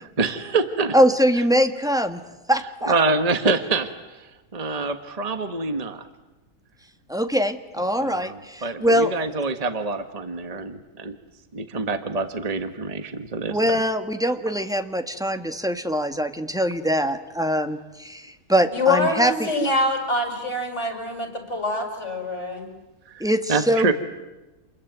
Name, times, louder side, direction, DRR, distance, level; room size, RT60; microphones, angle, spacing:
voice 1, 0.2-0.9 2.8-3.9 4.2-6.1 8.0-11.2 11.5-13.8 23.1-23.2 23.5-23.9, right 3 dB, 25° right, 8 dB, 1.4 m, -26 dB
voice 2, 0.9-2.2 2.5-2.9 7.1-9.1 13.5-19.5 23.2-23.9, equal, ahead, 7 dB, 1.5 m, -22 dB
voice 3, 18.7-22.7, left 2 dB, 50° left, 4 dB, 6.3 m, -25 dB
28.5 x 21.5 x 9.4 m, 1.1 s
omnidirectional pair, 1.6 m